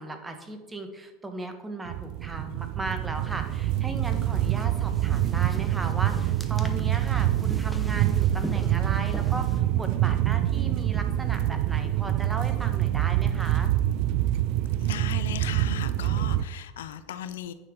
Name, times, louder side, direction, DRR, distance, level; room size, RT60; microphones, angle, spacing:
voice 1, 0.0-13.7, right 2 dB, 15° right, 6 dB, 1.2 m, -37 dB
sound 1, 1.9-16.4, right 13 dB, 60° right, 0.3 m, -26 dB
sound 2, 3.3-9.6, left 2 dB, 5° left, 0.8 m, -41 dB
voice 2, 14.8-17.5, left 10 dB, 90° left, 12 dB, 0.5 m, -37 dB
9.1 x 5.6 x 3.7 m, 1.2 s
supercardioid pair, 110°, 0 cm